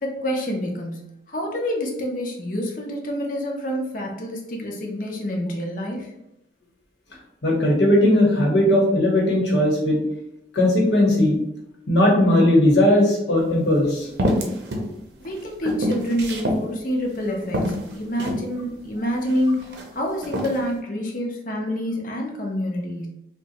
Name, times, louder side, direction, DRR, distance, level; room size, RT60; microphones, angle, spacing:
voice 1, 0.0-6.1 15.2-23.1, equal, 45° left, 1 dB, 0.6 m, -27 dB
voice 2, 7.4-10.0 10.5-11.4 11.9-14.1, left 1 dB, 70° left, -1 dB, 1.0 m, -18 dB
sound 1, 13.4-13.5 14.2-14.9 15.2-16.6 17.1-17.2 17.5-18.5 19.2-19.8 20.2-20.6, equal, 65° right, 0.6 m, -25 dB
2.7 x 2.2 x 4.0 m, 0.85 s
head